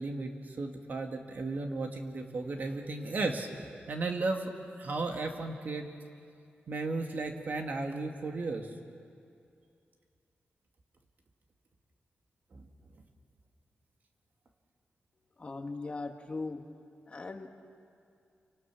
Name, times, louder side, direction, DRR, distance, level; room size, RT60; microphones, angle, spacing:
voice 1, 0.0-3.5 3.9-4.5 4.8-5.9 6.7-8.7 12.5-12.6, right 3 dB, 50° right, 3 dB, 2.1 m, -34 dB
voice 2, 15.4-16.6 17.1-17.5, left 3 dB, 30° left, 4 dB, 1.7 m, -39 dB
28.5 x 25.5 x 6.3 m, 2.4 s
wide cardioid pair, 150°, 4 cm